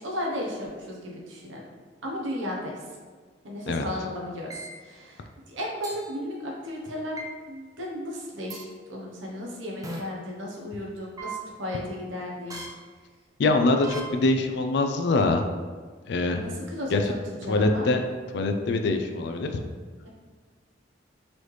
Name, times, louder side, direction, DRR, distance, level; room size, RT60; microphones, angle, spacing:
voice 1, 0.0-1.7 2.0-2.8 3.4-12.6 16.3-17.9, left 1 dB, 90° right, -2 dB, 0.9 m, -35 dB
sound 1, 4.5-4.7 5.8-6.0 7.2-7.3 8.5-8.6 9.8-10.0 11.2-11.3 12.5-12.7 13.8-14.0, right 2 dB, 20° right, 0.4 m, -36 dB
voice 2, 13.4-15.4 16.1-16.5 16.9-17.0 17.5-18.0 18.3-19.5, left 2 dB, 60° left, 5 dB, 0.4 m, -23 dB
4.0 x 3.2 x 3.2 m, 1.5 s
head